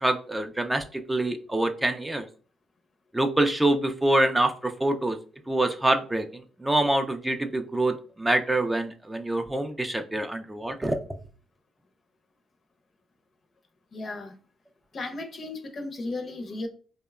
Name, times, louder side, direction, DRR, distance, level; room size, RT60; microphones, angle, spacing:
voice 1, 0.0-2.3 3.1-5.2 5.5-11.0, right 1 dB, 10° right, 0.3 m, -25 dB
voice 2, 13.9-14.4 14.9-16.7, left 2 dB, 45° left, 0.5 m, -35 dB
2.8 x 2.1 x 2.2 m
cardioid pair, 90°, 0 cm